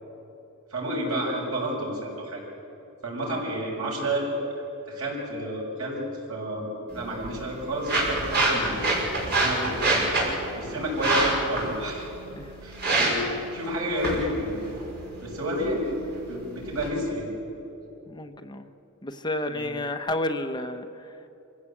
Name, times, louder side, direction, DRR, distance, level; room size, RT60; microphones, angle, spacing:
voice 1, 0.7-2.4 3.0-6.0 6.3-8.8 9.2-12.1 12.6-13.2 13.5-14.6 15.2-16.0 16.3-17.3 19.5-19.7, right 1 dB, 80° right, -2 dB, 7.2 m, -30 dB
sound 1, 6.9-16.9, right 2 dB, 50° right, 6.0 m, -28 dB
voice 2, 18.1-18.7 19.0-21.1, left 1 dB, 20° left, 6 dB, 1.0 m, -31 dB
26.0 x 16.0 x 8.6 m, 3.0 s
head